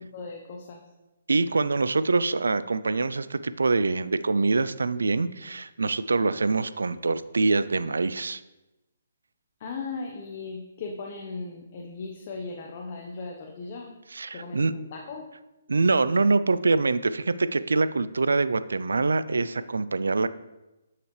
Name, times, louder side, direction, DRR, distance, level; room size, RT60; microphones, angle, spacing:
voice 1, 0.1-0.8 9.6-13.9 14.3-15.3, left 4 dB, 40° left, 1 dB, 1.0 m, -37 dB
voice 2, 1.3-8.4 14.1-14.7 15.7-20.3, right 3 dB, 80° right, 14 dB, 0.4 m, -24 dB
9.2 x 5.8 x 3.2 m, 1.0 s
hypercardioid pair, 145°, 0 cm